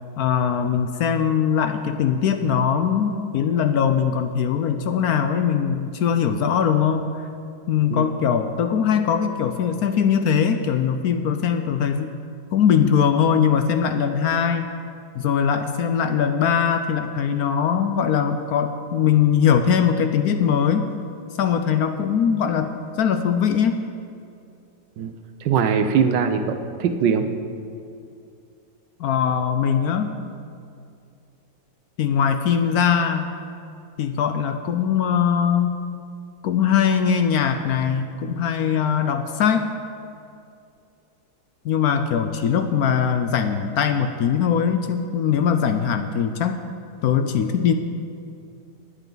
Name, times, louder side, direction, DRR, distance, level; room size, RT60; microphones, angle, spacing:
voice 1, 0.2-7.1 7.7-12.1 12.5-14.7 15.1-20.9 21.4-22.7 23.0-23.8 29.0-30.1 32.0-33.3 34.0-35.8 36.4-39.7 41.6-46.6 47.0-47.7, left 7 dB, 70° left, 7 dB, 1.0 m, -21 dB
voice 2, 25.4-27.3, right 6 dB, 80° right, 8 dB, 1.4 m, -21 dB
20.0 x 8.1 x 3.9 m, 2.5 s
omnidirectional pair, 1.9 m